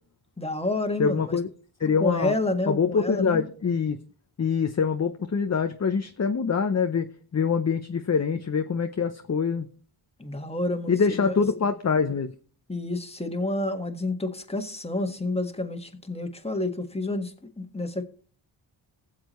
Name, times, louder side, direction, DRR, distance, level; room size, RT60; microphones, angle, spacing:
voice 1, 0.4-1.4 2.0-3.4 10.2-11.3 12.7-18.0, left 2 dB, 10° left, 1.6 m, -29 dB
voice 2, 1.0-1.5 1.8-2.3 2.7-4.0 4.4-9.7 10.9-12.3, left 5 dB, 30° left, 0.8 m, -24 dB
19.0 x 7.6 x 3.1 m
cardioid pair, 65°, 50 cm